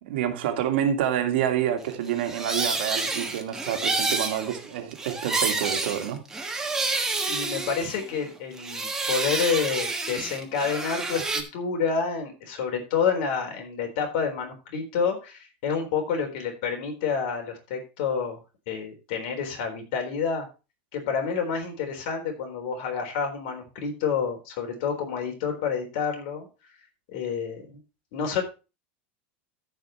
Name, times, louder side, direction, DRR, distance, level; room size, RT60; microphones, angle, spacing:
voice 1, 0.0-6.2, right 10 dB, 75° right, 1.9 m, -28 dB
sound 1, 2.1-8.3 8.6-11.4, right 3 dB, 10° right, 1.3 m, -29 dB
voice 2, 7.3-18.4 18.7-20.5 20.9-26.5 27.1-27.8 28.1-28.4, left 6 dB, 60° left, 3.9 m, -29 dB
14.0 x 5.0 x 4.4 m
supercardioid pair, 155°, 6 cm